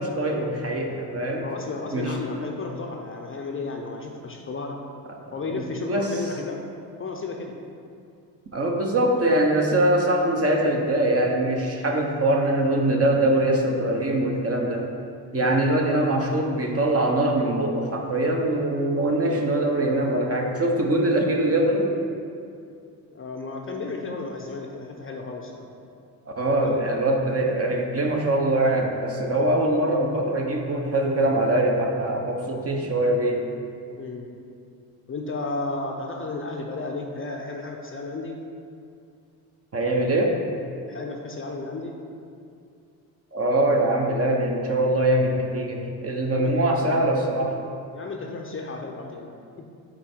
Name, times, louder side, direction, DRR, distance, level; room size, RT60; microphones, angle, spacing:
voice 1, 0.0-1.4 1.9-2.1 5.5-6.2 8.5-14.9 15.3-21.9 26.4-33.4 39.7-40.4 43.3-47.6, right 1 dB, 30° right, 1 dB, 1.1 m, -23 dB
voice 2, 1.4-4.8 5.3-6.6 7.0-7.5 15.3-15.6 19.2-19.5 23.1-25.7 26.5-26.9 34.0-34.3 35.1-38.4 40.9-41.9 46.3-46.7 47.9-49.3 49.6-49.7, left 3 dB, 25° left, 1 dB, 0.8 m, -33 dB
7.6 x 4.1 x 4.5 m, 2.4 s
hypercardioid pair, 55°, 47 cm